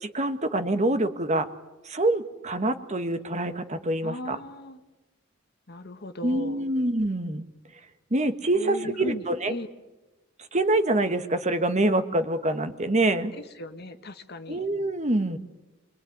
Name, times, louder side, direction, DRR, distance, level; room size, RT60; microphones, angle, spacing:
voice 1, 0.0-1.5 1.8-4.4 6.2-7.4 8.1-9.5 10.5-13.3 14.5-15.4, right 2 dB, 35° right, 10 dB, 1.5 m, -25 dB
voice 2, 4.0-4.8 5.7-6.7 8.5-9.7 13.3-14.7, left 1 dB, 55° left, 9 dB, 1.7 m, -37 dB
27.5 x 22.0 x 9.5 m, 1.1 s
head